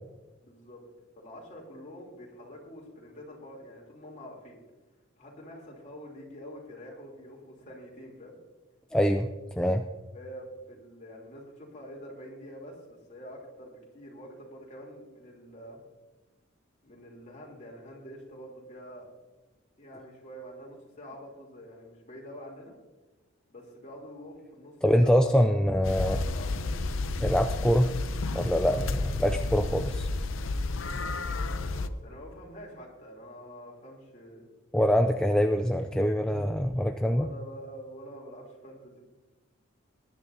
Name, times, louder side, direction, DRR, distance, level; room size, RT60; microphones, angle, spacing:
voice 1, 0.4-0.8 1.2-4.6 5.2-8.4 10.1-15.8 16.8-19.1 19.8-22.7 23.5-25.5 26.0-26.8 30.9-34.5 37.1-39.0, equal, 35° left, -2 dB, 3.3 m, -46 dB
voice 2, 8.9-9.3 9.6-9.8 24.8-26.2 27.2-27.9 28.3-30.1 34.7-37.3, equal, 5° left, 5 dB, 0.4 m, -24 dB
sound 1, 25.8-31.9, left 3 dB, 80° left, 0.7 m, -31 dB
20.0 x 11.0 x 2.8 m, 1.2 s
head